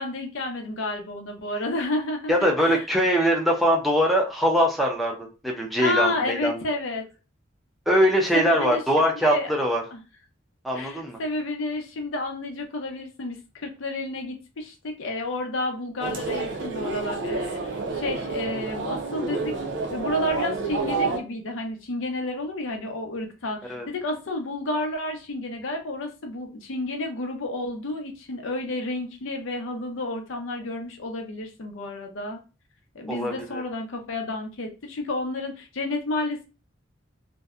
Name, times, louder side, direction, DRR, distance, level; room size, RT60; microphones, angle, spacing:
voice 1, 0.0-2.8 5.8-7.0 8.3-10.0 10.7-19.5 19.9-32.4 32.9-36.5, left 2 dB, 85° left, 4 dB, 0.6 m, -31 dB
voice 2, 2.3-6.6 7.9-9.8 10.6-11.2 23.7-23.9 33.1-33.6, equal, ahead, 0 dB, 0.4 m, -22 dB
sound 1, 16.0-21.2, right 3 dB, 65° right, 0.5 m, -29 dB
2.6 x 2.1 x 2.3 m, 0.31 s
head